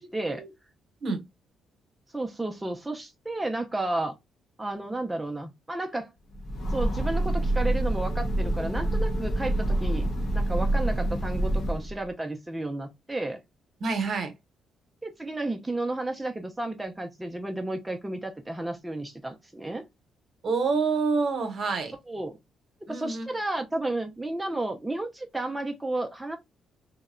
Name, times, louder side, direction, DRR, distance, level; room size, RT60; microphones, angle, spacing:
voice 1, 0.1-0.4 2.1-4.1 4.6-6.1 6.7-13.4 15.0-19.9 22.1-22.4 22.9-26.4, right 2 dB, 10° right, 0.4 m, -32 dB
Train, 6.3-12.0, right 1 dB, 60° left, 0.8 m, -27 dB
voice 2, 13.8-14.3 20.4-21.9 22.9-23.3, right 4 dB, 55° right, 0.8 m, -27 dB
2.8 x 2.0 x 2.4 m
cardioid pair, 90°, 0 cm